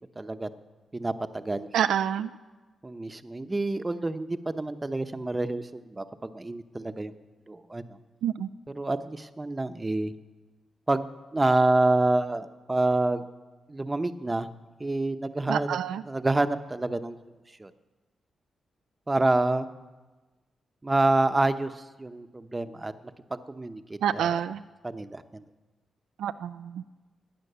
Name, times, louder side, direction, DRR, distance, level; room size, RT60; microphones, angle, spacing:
voice 1, 0.2-0.5 0.9-1.7 2.8-7.1 7.5-8.0 8.8-10.1 10.9-11.1 11.3-13.2 13.7-14.5 14.8-15.8 16.1-17.2 17.6-17.7 19.1-19.7 20.8-22.9 23.3-24.3 24.8-25.4, right 2 dB, 25° right, 10 dB, 0.9 m, -27 dB
voice 2, 1.7-2.3 8.2-8.5 15.5-16.0 24.0-24.6 26.2-26.8, right 9 dB, 90° right, 11 dB, 0.4 m, -27 dB
18.0 x 8.9 x 6.8 m, 1.2 s
cardioid pair, 65°, 0 cm